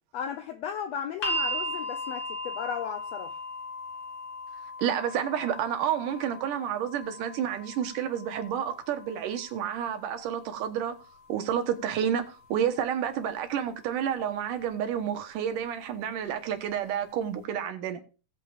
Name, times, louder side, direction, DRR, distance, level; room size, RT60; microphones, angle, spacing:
voice 1, 0.1-3.4, left 8 dB, 85° left, 1.4 m, -35 dB
sound 1, 1.2-13.3 14.4-14.5, equal, 45° left, 1.6 m, -38 dB
voice 2, 4.8-11.0 11.3-18.0, right 9 dB, 75° right, 2.7 m, -30 dB
18.0 x 8.2 x 2.5 m
omnidirectional pair, 3.9 m